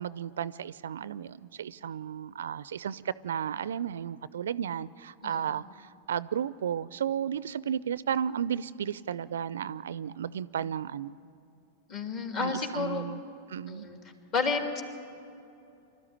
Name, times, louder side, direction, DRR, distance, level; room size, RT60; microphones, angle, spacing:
voice 1, 0.0-11.2 12.4-13.2 13.5-13.9, right 8 dB, 70° right, 19 dB, 0.4 m, -33 dB
voice 2, 11.9-13.0 13.7-14.0 14.3-14.8, left 4 dB, 35° left, 4 dB, 2.9 m, -31 dB
24.5 x 13.0 x 10.0 m, 2.6 s
figure-of-eight pair, 95°, 0 cm